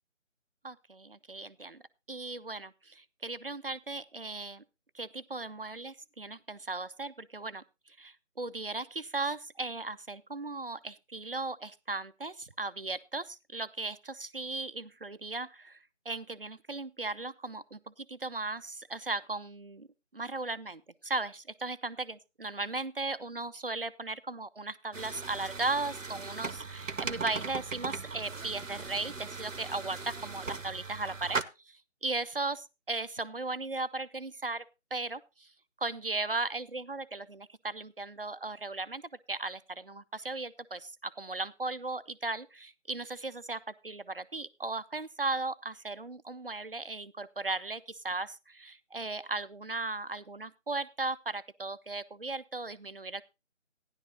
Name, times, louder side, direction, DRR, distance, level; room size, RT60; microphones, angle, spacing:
voice 1, 0.6-1.8 2.1-4.6 4.9-15.8 16.1-19.9 20.1-31.4 31.7-34.6 34.9-35.5 35.8-39.0 39.3-53.2, right 3 dB, 50° right, 13 dB, 0.5 m, -37 dB
sound 1, 24.9-31.4, right 4 dB, 85° right, 0.9 m, -38 dB
15.0 x 10.5 x 2.8 m, 0.26 s
figure-of-eight pair, 165°, 38 cm